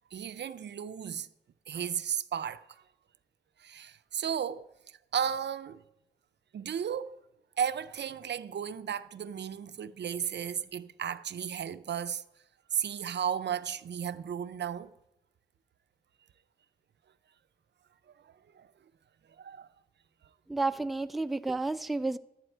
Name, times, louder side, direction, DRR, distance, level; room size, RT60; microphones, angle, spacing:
voice 1, 0.1-1.3 1.7-2.6 3.6-4.6 5.1-5.8 6.5-7.1 7.6-12.2 12.7-14.9 18.2-18.7 19.4-19.7, right 8 dB, 75° right, 0.4 m, -34 dB
voice 2, 20.5-22.2, right 3 dB, ahead, 0.3 m, -31 dB
11.5 x 9.1 x 4.4 m
cardioid pair, 60°, 18 cm